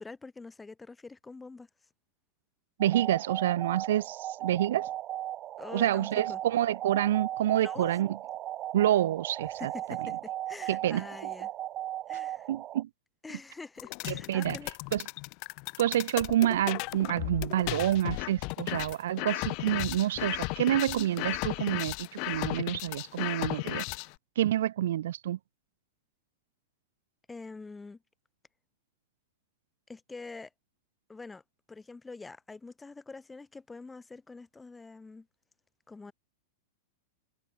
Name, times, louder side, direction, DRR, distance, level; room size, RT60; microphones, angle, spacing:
voice 1, 0.0-1.7 5.6-6.4 7.5-7.9 9.6-11.5 12.1-12.5 13.2-14.7 27.3-28.0 29.9-30.5 31.1-31.4 31.7-35.3 35.9-36.1, left 3 dB, 10° left, 4.6 m, -45 dB
sound 1, 2.8-12.8, right 13 dB, 30° right, 2.7 m, -37 dB
voice 2, 2.8-4.9 5.7-8.1 8.7-9.7 10.7-11.1 12.5-12.9 14.1-14.6 14.9-15.0 15.8-23.8 24.4-25.4, right 12 dB, 75° right, 0.7 m, -28 dB
sound 2, 13.8-24.1, left 32 dB, 45° left, 1.1 m, -35 dB
supercardioid pair, 145°, 0 cm